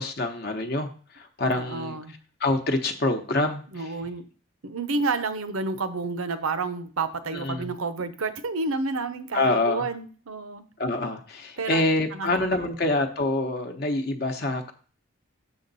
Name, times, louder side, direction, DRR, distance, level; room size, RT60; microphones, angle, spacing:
voice 1, 0.0-2.0 2.4-4.0 7.3-7.7 9.3-9.9 10.8-14.7, left 2 dB, 45° left, 4 dB, 0.8 m, -26 dB
voice 2, 1.6-2.1 3.7-4.2 4.6-10.6 11.6-11.8 12.1-12.5, right 3 dB, 80° right, 12 dB, 0.8 m, -30 dB
7.1 x 6.9 x 4.1 m, 0.41 s
head